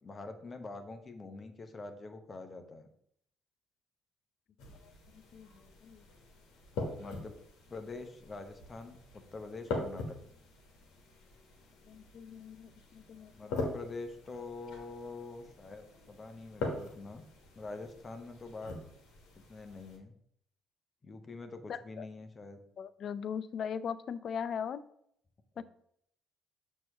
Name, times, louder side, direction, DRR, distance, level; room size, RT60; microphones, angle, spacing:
voice 1, 0.0-2.9 7.0-7.4 7.7-10.2 13.3-17.2 17.6-18.8 19.5-20.1 21.0-22.6 25.5-25.6, left 3 dB, 35° left, 7 dB, 0.9 m, -45 dB
sound 1, 4.6-20.0, left 2 dB, 70° left, 1.3 m, -43 dB
voice 2, 4.8-6.0 11.9-13.5 21.7-22.1 22.8-24.8 25.6-25.7, left 7 dB, 55° left, 15 dB, 0.4 m, -40 dB
6.1 x 3.0 x 5.7 m, 0.70 s
hypercardioid pair, 55°, 0 cm